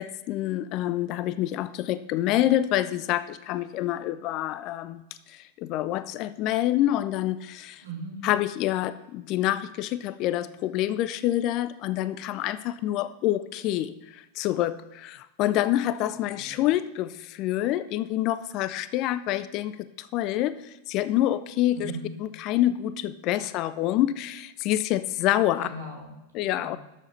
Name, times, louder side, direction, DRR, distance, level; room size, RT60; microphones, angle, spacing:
voice 1, 0.0-5.0 5.3-7.8 8.2-21.9 22.2-25.7 26.3-26.8, left 13 dB, 40° left, 15 dB, 0.4 m, -27 dB
voice 2, 7.8-8.2 16.3-16.6 21.7-22.1 25.6-26.8, right 2 dB, 75° right, -4 dB, 3.8 m, -39 dB
12.0 x 7.2 x 4.2 m, 0.95 s
figure-of-eight pair, 90°, 0 cm